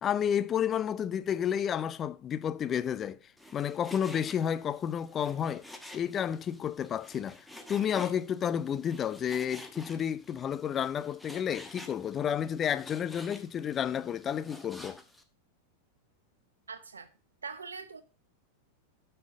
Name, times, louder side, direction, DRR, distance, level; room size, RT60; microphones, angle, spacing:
voice 1, 0.0-3.2 3.5-5.7 5.9-15.0, left 8 dB, 25° left, 0.6 m, -31 dB
Frying (food), 3.4-15.2, left 1 dB, 5° left, 1.3 m, -50 dB
voice 2, 16.7-17.1 17.4-18.0, right 5 dB, 75° right, 0.9 m, -42 dB
12.5 x 5.8 x 3.6 m
figure-of-eight pair, 90°, 0 cm